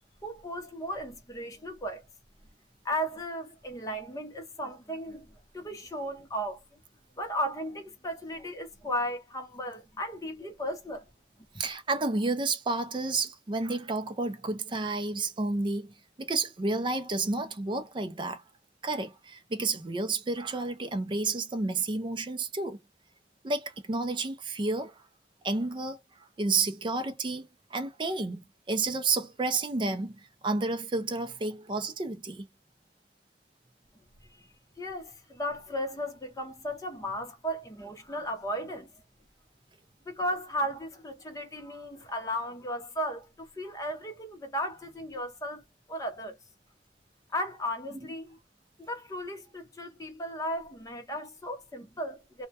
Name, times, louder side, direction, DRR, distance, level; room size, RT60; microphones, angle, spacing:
voice 1, 0.2-2.0 2.8-6.6 7.2-11.0 11.5-11.6 34.3-34.5 34.8-38.9 40.1-45.6 45.9-46.4 47.3-48.4 48.8-52.5, equal, 20° left, 0.7 m, -35 dB
voice 2, 11.6-18.4 18.8-22.8 23.4-25.0 25.4-26.0 26.4-32.5, right 3 dB, 30° right, 0.4 m, -31 dB
2.2 x 2.1 x 2.7 m
head